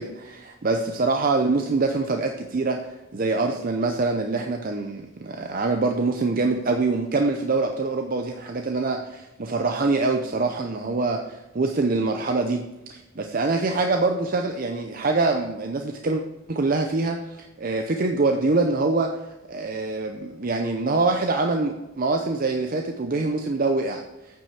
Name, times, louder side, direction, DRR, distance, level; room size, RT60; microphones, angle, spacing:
voice 1, 0.0-2.9 3.1-12.6 12.9-16.2 16.5-17.2 17.6-19.2 19.5-24.0, right 3 dB, 40° right, 4 dB, 0.5 m, -24 dB
9.0 x 5.4 x 4.7 m, 1.0 s
head